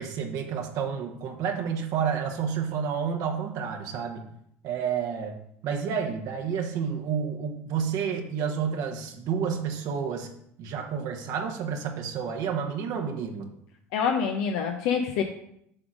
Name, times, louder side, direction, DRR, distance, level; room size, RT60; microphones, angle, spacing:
voice 1, 0.0-4.2 4.6-5.4 5.6-10.3 10.6-13.5, right 7 dB, 60° right, 3 dB, 1.1 m, -30 dB
voice 2, 13.9-15.2, left 6 dB, 70° left, 3 dB, 0.7 m, -26 dB
6.7 x 3.6 x 6.2 m, 0.73 s
hypercardioid pair, 85°, 7 cm